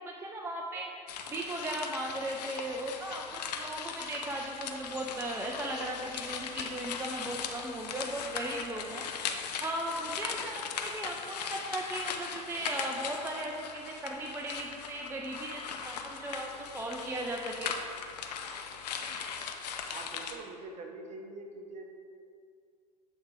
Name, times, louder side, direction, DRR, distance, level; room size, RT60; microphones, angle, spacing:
voice 1, 0.1-9.0 9.6-17.7, right 1 dB, 10° right, 0 dB, 0.4 m, -37 dB
sound 1, 1.1-20.4, left 6 dB, 75° left, 0.5 m, -39 dB
voice 2, 19.9-21.9, right 2 dB, 35° right, 3 dB, 0.8 m, -44 dB
7.8 x 3.5 x 3.4 m, 2.3 s
hypercardioid pair, 85°, 21 cm